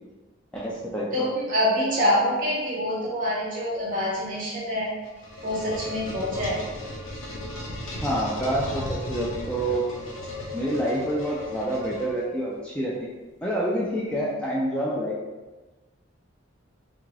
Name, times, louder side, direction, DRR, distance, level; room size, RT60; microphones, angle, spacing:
voice 1, 0.5-1.3 8.0-9.8 10.5-13.1 13.4-15.2, right 1 dB, 5° left, -5 dB, 0.3 m, -27 dB
voice 2, 1.1-4.9 5.4-6.6, equal, 45° right, -5 dB, 1.1 m, -25 dB
sound 1, 4.8-12.5, left 1 dB, 80° left, 0.7 m, -35 dB
3.5 x 2.4 x 3.2 m, 1.2 s
head